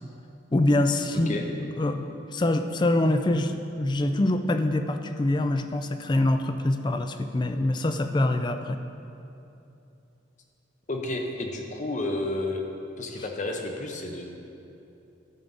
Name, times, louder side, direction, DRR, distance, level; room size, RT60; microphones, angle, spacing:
voice 1, 0.5-1.4 1.8-8.8, left 1 dB, 25° left, 8 dB, 0.4 m, -25 dB
voice 2, 10.9-12.6 13.0-14.2, left 2 dB, 40° left, 2 dB, 0.9 m, -31 dB
11.0 x 7.2 x 4.0 m, 2.8 s
head